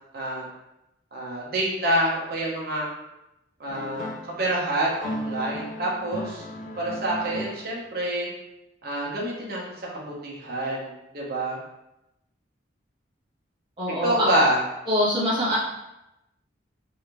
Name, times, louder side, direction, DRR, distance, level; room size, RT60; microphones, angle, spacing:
voice 1, 0.1-0.4 1.1-2.9 3.6-4.1 4.4-6.5 6.8-8.3 8.8-11.6 14.0-14.6, right 1 dB, 50° right, -4 dB, 1.1 m, -27 dB
sound 1, 3.7-4.4 4.9-7.9, equal, 40° left, 0.3 m, -35 dB
voice 2, 13.8-14.3 14.9-15.6, left 1 dB, 25° right, -9 dB, 1.4 m, -24 dB
3.4 x 3.3 x 3.1 m, 0.90 s
head